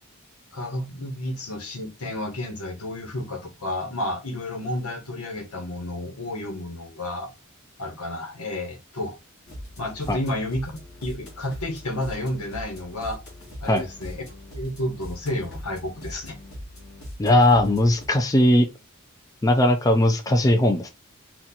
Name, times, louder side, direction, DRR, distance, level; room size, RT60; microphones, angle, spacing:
voice 1, 0.5-7.3 7.8-9.2 9.8-10.7 11.0-13.2 13.6-14.2 14.5-16.3, left 1 dB, 85° left, 1.3 m, -31 dB
sound 1, 9.4-18.1, equal, 50° left, 2.1 m, -41 dB
voice 2, 17.2-18.7 19.4-20.9, left 1 dB, 15° left, 0.5 m, -18 dB
4.3 x 2.5 x 4.2 m
head